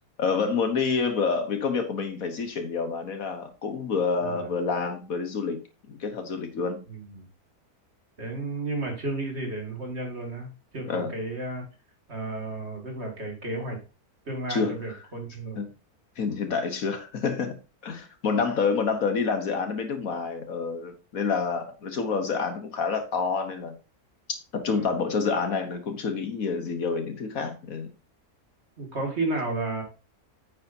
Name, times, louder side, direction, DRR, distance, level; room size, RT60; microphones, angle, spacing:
voice 1, 0.2-5.6 5.9-6.8 10.9-11.1 14.5-15.0 15.6-15.7 16.2-17.6 17.8-23.7 24.5-27.9, left 5 dB, 65° left, 7 dB, 1.6 m, -28 dB
voice 2, 4.2-4.6 6.9-7.3 8.2-11.6 12.1-13.8 14.3-15.6 16.3-16.4 24.7-24.9 28.8-29.8, right 2 dB, 45° right, 1 dB, 2.6 m, -33 dB
9.2 x 8.6 x 2.8 m, 0.31 s
omnidirectional pair, 1.6 m